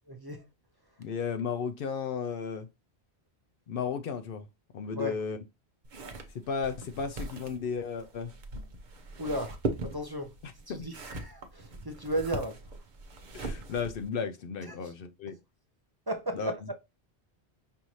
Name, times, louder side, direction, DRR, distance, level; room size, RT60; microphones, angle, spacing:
voice 1, 0.1-0.4 4.9-5.2 9.2-9.5 9.8-10.3 10.7-12.6 14.7-14.9 16.1-16.6, equal, 30° right, 0.5 m, -34 dB
voice 2, 1.0-2.7 3.7-4.5 4.7-5.4 6.3-8.3 10.4-10.9 13.3-15.4 16.3-16.5, left 5 dB, 65° left, 0.7 m, -34 dB
sound 1, 5.8-14.1, right 2 dB, 50° right, 0.8 m, -40 dB
5.5 x 2.6 x 3.0 m
omnidirectional pair, 1.1 m